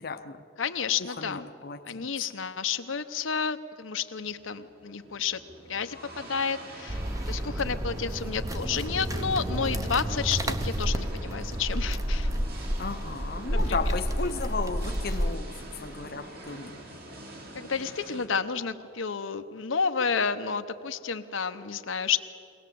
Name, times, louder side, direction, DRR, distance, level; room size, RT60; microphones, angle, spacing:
voice 1, 0.0-0.4 1.0-2.1 12.8-15.6 15.8-17.0, left 4 dB, 50° left, 0.7 m, -35 dB
voice 2, 0.6-1.5 1.8-5.4 5.7-7.0 7.3-12.3 13.5-13.8 17.5-22.2, left 6 dB, 90° left, 0.9 m, -30 dB
sound 1, 4.2-18.3, right 1 dB, 50° right, 2.5 m, -45 dB
sound 2, 6.9-15.3, equal, 15° right, 0.8 m, -30 dB
23.0 x 18.0 x 7.7 m
head